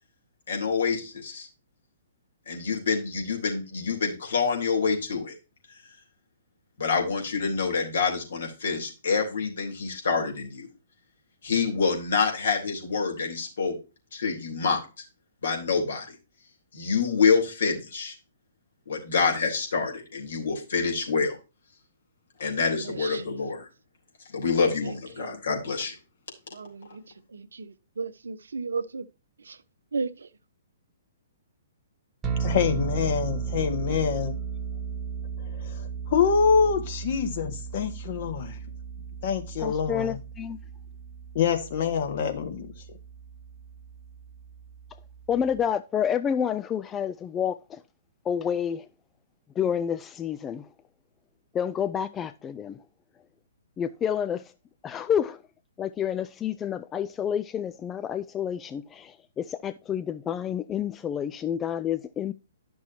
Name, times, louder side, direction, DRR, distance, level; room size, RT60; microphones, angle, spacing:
voice 1, 0.5-1.5 2.5-5.3 6.8-10.7 11.4-13.7 14.1-14.8 15.4-16.1 16.7-18.1 18.9-21.4 22.4-23.7 24.3-25.9, left 5 dB, 70° left, 3.4 m, -27 dB
voice 2, 22.8-23.2 24.8-25.4 26.5-27.0 27.3-29.1 29.4-29.6 29.9-30.3, right 4 dB, 75° right, 0.8 m, -35 dB
sound 1, 32.2-45.7, right 6 dB, 15° right, 1.3 m, -35 dB
voice 3, 32.4-34.3 35.5-38.6 39.2-40.2 41.3-42.7, left 6 dB, 50° left, 1.7 m, -25 dB
voice 4, 39.6-40.6 45.3-47.8 48.3-48.8 49.6-50.6 51.5-52.8 53.8-54.4 54.8-55.4 55.8-62.3, left 8 dB, 20° left, 0.4 m, -29 dB
11.0 x 6.2 x 2.7 m
figure-of-eight pair, 125°, 0 cm